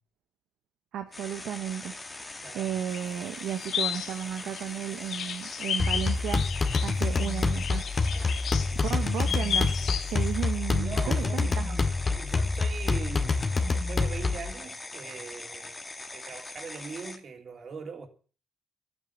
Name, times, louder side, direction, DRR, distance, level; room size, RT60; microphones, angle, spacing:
voice 1, 0.9-1.9 2.5-7.9 8.9-9.7 10.1-11.8, right 10 dB, 80° right, 1.0 m, -34 dB
sound 1, 1.1-17.2, left 2 dB, 20° left, 2.1 m, -42 dB
voice 2, 2.4-2.7 8.1-8.3 10.8-15.8 16.1-18.1, right 5 dB, 50° right, 3.1 m, -41 dB
sound 2, 2.9-10.4, left 8 dB, 65° left, 1.2 m, -34 dB
sound 3, 5.8-14.5, left 3 dB, 35° left, 2.0 m, -27 dB
12.0 x 9.2 x 8.2 m
cardioid pair, 90°, 0 cm